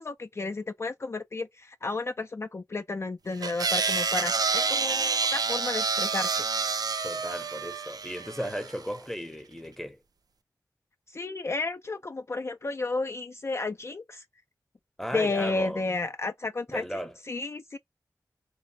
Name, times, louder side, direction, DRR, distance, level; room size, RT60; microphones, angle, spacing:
voice 1, 0.0-6.5 11.1-14.2 15.1-17.8, left 3 dB, 40° left, 0.3 m, -32 dB
sound 1, 3.4-8.8, right 4 dB, 70° right, 0.4 m, -28 dB
voice 2, 7.0-10.0 15.0-15.8 16.7-17.2, equal, 5° left, 0.7 m, -35 dB
3.1 x 2.0 x 2.6 m
cardioid pair, 45°, 7 cm